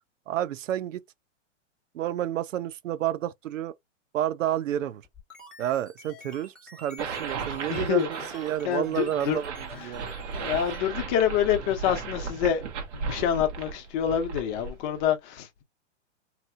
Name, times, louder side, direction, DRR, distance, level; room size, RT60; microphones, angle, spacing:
voice 1, 0.3-1.0 1.9-3.7 4.1-5.0 5.6-9.5 9.8-10.0, right 11 dB, 90° right, 0.5 m, -30 dB
sound 1, 5.0-10.8, left 1 dB, ahead, 1.3 m, -49 dB
sound 2, 7.0-15.1, right 5 dB, 65° right, 1.2 m, -36 dB
voice 2, 7.7-8.1 8.6-9.4 9.7-10.0 10.3-12.6 12.9-15.6, left 9 dB, 40° left, 0.8 m, -27 dB
2.9 x 2.6 x 2.3 m
hypercardioid pair, 125°, 38 cm